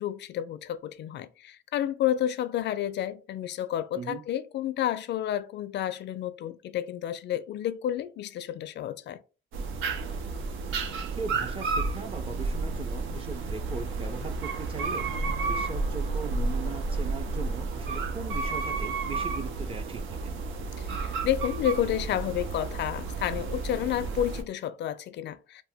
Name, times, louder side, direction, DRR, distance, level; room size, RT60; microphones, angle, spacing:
voice 1, 0.0-9.2 20.8-25.6, left 11 dB, 60° left, 0.4 m, -30 dB
sound 1, 9.5-24.4, right 3 dB, 85° right, 0.6 m, -31 dB
voice 2, 11.1-15.1 15.4-20.3, right 4 dB, 30° right, 0.5 m, -39 dB
2.7 x 2.1 x 3.4 m
cardioid pair, 90°, 20 cm